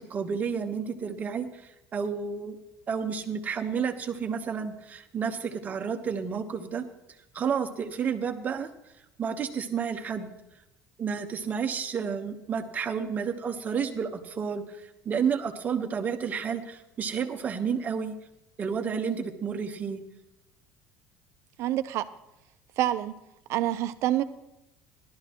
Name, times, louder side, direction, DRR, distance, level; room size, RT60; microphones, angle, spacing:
voice 1, 0.0-2.6 2.9-6.9 7.3-8.7 9.2-10.3 11.0-18.1 18.6-20.0, right 6 dB, 30° right, 6 dB, 1.1 m, -31 dB
voice 2, 21.6-22.1 22.8-23.1 23.5-24.2, right 13 dB, 55° right, 11 dB, 0.7 m, -26 dB
17.0 x 12.0 x 3.0 m, 0.90 s
cardioid pair, 140°, 6 cm